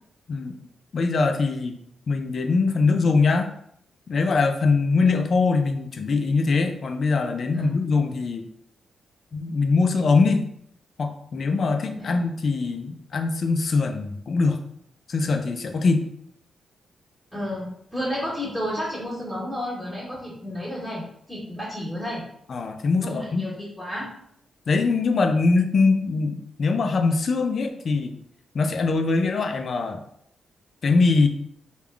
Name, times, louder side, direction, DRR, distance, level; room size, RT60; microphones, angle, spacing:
voice 1, 0.9-1.7 2.1-3.5 4.1-8.4 9.3-10.5 11.0-14.6 15.1-16.1 22.5-23.4 24.7-28.1 28.5-30.0 30.8-31.3, left 4 dB, 50° left, 6 dB, 0.4 m, -22 dB
voice 2, 17.3-21.0 21.3-22.2 23.0-24.1, equal, 5° left, -10 dB, 1.4 m, -31 dB
3.6 x 2.3 x 3.3 m, 0.70 s
cardioid pair, 115°, 0 cm